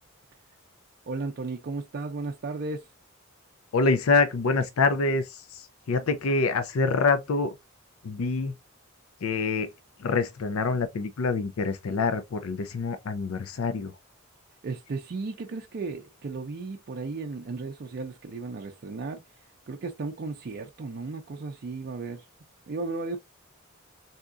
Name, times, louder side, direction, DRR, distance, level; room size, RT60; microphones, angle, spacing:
voice 1, 1.1-2.9 14.6-19.2 19.7-22.3 22.7-23.2, right 3 dB, 50° right, 0.4 m, -35 dB
voice 2, 3.7-7.6 8.0-8.6 9.2-9.7 10.0-14.0, left 4 dB, 75° left, 0.5 m, -26 dB
3.5 x 2.8 x 2.4 m
head